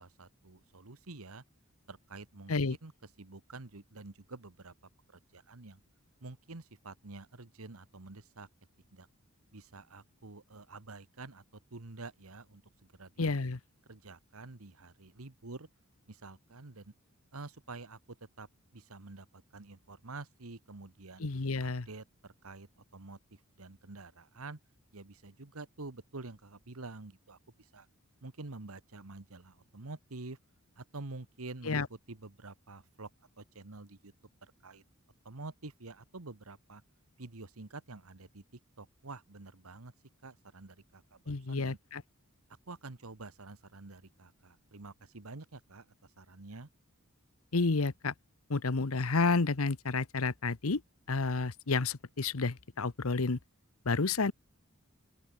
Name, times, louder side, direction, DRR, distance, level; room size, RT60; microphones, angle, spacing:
voice 1, 0.0-1.4 1.9-2.9 3.2-4.7 5.3-5.8 6.2-8.5 8.9-9.1 9.5-12.6 13.0-13.4 13.9-15.7 16.1-16.9 17.3-21.3 21.6-24.6 24.9-27.9 28.2-30.4 30.8-33.1 33.4-34.1 34.4-34.8 35.2-36.8 37.2-39.9 40.2-41.8 42.7-46.7, right 3 dB, 80° right, 1.5 m, -48 dB
voice 2, 13.2-13.6 21.2-21.9 31.7-31.9 41.3-42.0 47.5-48.1 48.5-50.8 51.1-53.4 53.8-54.3, left 3 dB, 75° left, 1.0 m, -30 dB
open air
head